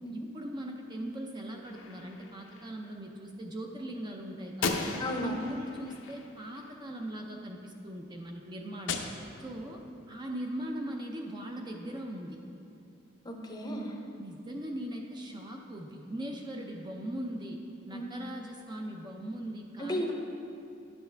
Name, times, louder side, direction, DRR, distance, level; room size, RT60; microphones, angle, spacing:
voice 1, 0.1-4.9 5.2-9.0 9.4-9.8 10.1-12.4 14.2-17.6 17.9-20.1, right 1 dB, 20° right, 1 dB, 0.5 m, -40 dB
Gunshot gunfire, 1.6-2.7 4.6-7.0 8.9-9.9, left 4 dB, 75° left, 0.6 m, -37 dB
voice 2, 5.0-5.3 13.2-13.9 17.9-18.1 19.8-20.1, equal, 20° left, 2 dB, 0.7 m, -34 dB
10.5 x 6.9 x 3.3 m, 2.7 s
head